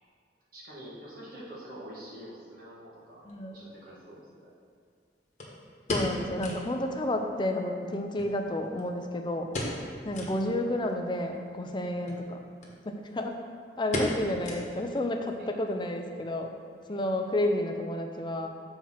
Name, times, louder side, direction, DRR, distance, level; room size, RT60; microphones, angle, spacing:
voice 1, 0.5-4.5 15.4-15.5 16.9-17.0, equal, 55° right, -6 dB, 1.9 m, -46 dB
sound 1, 3.3-3.4 5.4-6.7 7.0-7.1 7.4-7.5 8.2-9.0 9.5-9.9 10.1-10.4 10.9-11.0 12.0-12.2 12.6-12.7 13.0-13.4 13.9-15.0 15.3-15.4 16.0-16.3 16.6-16.7, left 1 dB, 40° left, 1.3 m, -35 dB
voice 2, 3.3-3.6 5.9-9.5 10.0-12.4 12.8-13.4 13.8-16.5 16.9-18.5, left 1 dB, 25° left, 4 dB, 0.6 m, -31 dB
7.5 x 4.4 x 5.7 m, 2.2 s
head